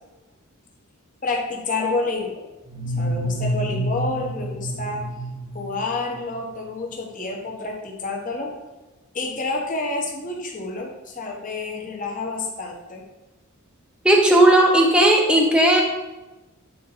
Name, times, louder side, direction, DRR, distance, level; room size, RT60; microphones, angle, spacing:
voice 1, 1.2-2.3 3.0-5.0 5.5-8.5 9.1-13.0, left 3 dB, 40° left, -1 dB, 1.2 m, -28 dB
sound 1, 2.7-6.3, equal, 25° right, 1.0 m, -28 dB
voice 2, 14.0-15.8, right 1 dB, 5° right, 0 dB, 0.8 m, -15 dB
8.5 x 4.2 x 4.0 m, 1.1 s
head